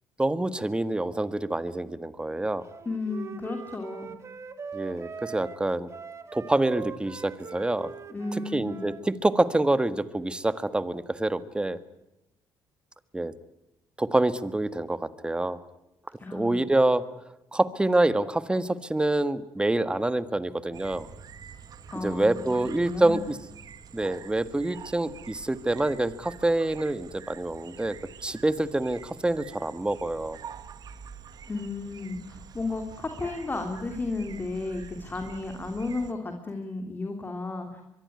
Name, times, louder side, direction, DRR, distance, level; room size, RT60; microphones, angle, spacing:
voice 1, 0.2-2.7 4.7-5.9 6.3-7.9 8.5-11.8 13.1-13.3 14.0-15.6 16.3-17.0 17.5-21.1 21.9-23.4 23.9-28.0 28.2-30.4, right 2 dB, 10° right, 13 dB, 1.6 m, -26 dB
Wind instrument woodwind instrument, 2.7-9.0, right 6 dB, 35° right, 1.9 m, -41 dB
voice 2, 2.8-4.2 8.1-8.8 16.2-16.6 21.9-23.3 31.5-37.8, left 3 dB, 25° left, 4 dB, 3.2 m, -33 dB
sound 1, 20.7-36.1, right 7 dB, 50° right, 1.9 m, -46 dB
24.0 x 23.0 x 9.6 m, 0.90 s
cardioid pair, 100°, 8 cm